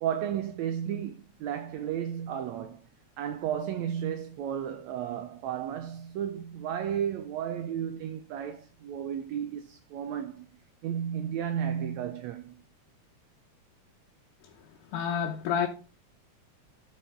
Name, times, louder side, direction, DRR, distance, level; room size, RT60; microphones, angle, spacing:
voice 1, 0.0-2.9 3.2-10.5 10.8-12.6, right 9 dB, 75° right, 1.8 m, -33 dB
voice 2, 14.9-15.7, left 8 dB, 85° left, 2.5 m, -28 dB
13.0 x 5.4 x 3.7 m
omnidirectional pair, 3.5 m